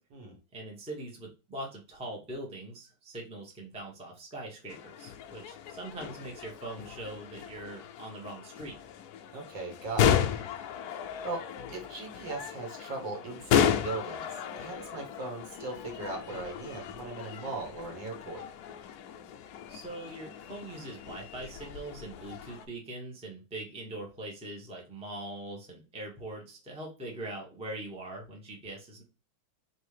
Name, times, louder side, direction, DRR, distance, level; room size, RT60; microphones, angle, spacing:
voice 1, 0.5-8.8 19.7-29.0, right 1 dB, 5° right, -1 dB, 0.7 m, -42 dB
sound 1, 4.7-22.7, left 9 dB, 85° left, 0.8 m, -34 dB
voice 2, 9.3-10.2 11.2-18.5, right 3 dB, 65° right, 1 dB, 2.0 m, -38 dB
4.6 x 2.7 x 3.2 m, 0.32 s
omnidirectional pair, 2.3 m